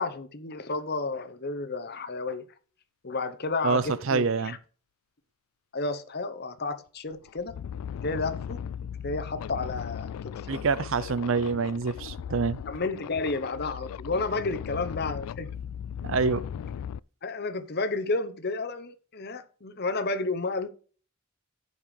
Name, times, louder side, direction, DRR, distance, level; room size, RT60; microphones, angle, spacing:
voice 1, 0.0-2.5 3.0-4.6 5.7-7.6 8.0-10.6 12.7-15.5 17.2-20.7, left 3 dB, 45° left, 0.9 m, -31 dB
voice 2, 3.6-4.6 10.5-12.6 16.0-16.5, right 4 dB, 60° right, 0.6 m, -26 dB
sound 1, 6.6-6.7 7.1-17.0, left 8 dB, 90° left, 0.3 m, -37 dB
15.5 x 5.4 x 3.3 m
head